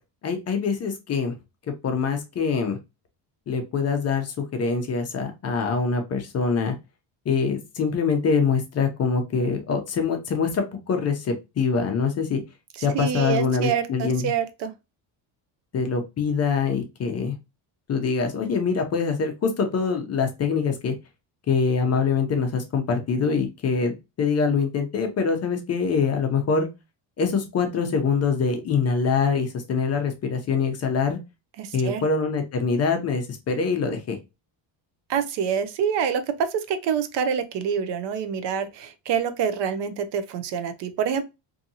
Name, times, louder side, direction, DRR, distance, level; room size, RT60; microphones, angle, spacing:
voice 1, 0.2-1.3 1.8-2.8 3.5-6.7 7.3-12.4 12.8-14.3 15.7-17.4 17.9-20.9 21.5-26.7 27.2-31.2 31.7-34.2, left 5 dB, 35° left, 0.5 m, -24 dB
voice 2, 12.8-14.7 31.6-32.0 35.1-41.2, right 7 dB, 60° right, 0.6 m, -26 dB
2.7 x 2.6 x 2.6 m
cardioid pair, 145°, 47 cm